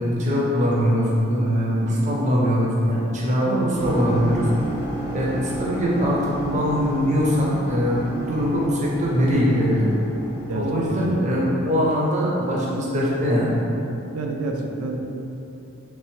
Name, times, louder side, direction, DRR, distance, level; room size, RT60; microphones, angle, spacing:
voice 1, 0.0-4.5 5.1-9.9 10.5-13.5, equal, 30° right, -5 dB, 0.5 m, -22 dB
sound 1, 3.7-11.4, equal, 30° left, 0.6 m, -33 dB
voice 2, 14.1-15.0, right 3 dB, 85° right, 1 dB, 0.4 m, -28 dB
3.3 x 3.3 x 3.1 m, 2.9 s
head